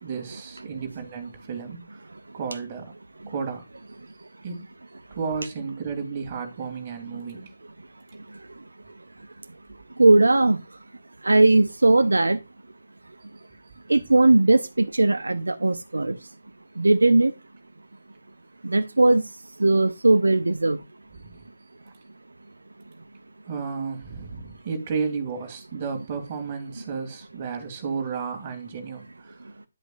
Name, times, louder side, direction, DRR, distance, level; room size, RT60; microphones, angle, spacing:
voice 1, 0.0-2.0 2.3-2.9 3.3-3.6 4.4-4.6 5.1-7.5 21.2-21.4 23.5-29.3, right 5 dB, 30° right, 2.8 m, -32 dB
voice 2, 10.0-10.6 11.2-12.4 13.9-16.2 16.8-17.3 18.6-19.2 19.6-20.8, right 2 dB, 70° right, 0.7 m, -18 dB
11.0 x 7.9 x 2.4 m
figure-of-eight pair, 145°, 0 cm